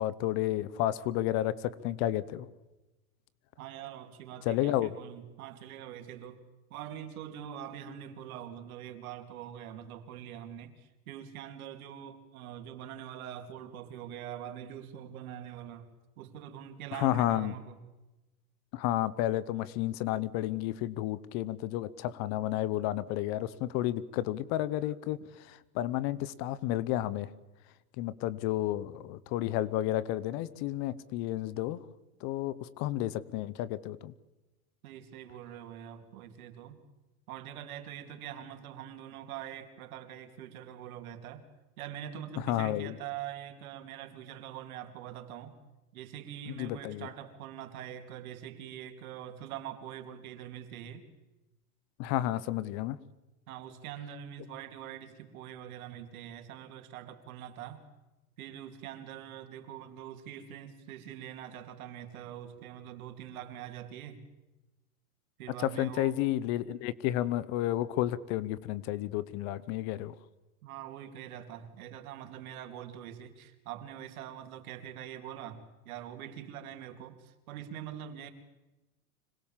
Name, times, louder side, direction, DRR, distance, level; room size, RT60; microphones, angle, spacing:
voice 1, 0.0-2.5 4.5-4.9 16.9-17.5 18.7-27.3 28.0-31.8 32.2-34.1 42.4-42.9 46.5-47.1 52.0-53.0 65.6-70.1, left 14 dB, 40° left, 18 dB, 0.8 m, -31 dB
voice 2, 3.6-6.4 6.7-15.9 16.2-17.8 34.8-36.8 37.3-41.5 41.8-45.5 45.9-51.0 53.5-57.8 58.4-64.2 65.4-66.1 70.6-78.3, right 10 dB, 65° right, 7 dB, 2.9 m, -44 dB
25.5 x 18.5 x 7.4 m, 1.1 s
supercardioid pair, 145°, 45 cm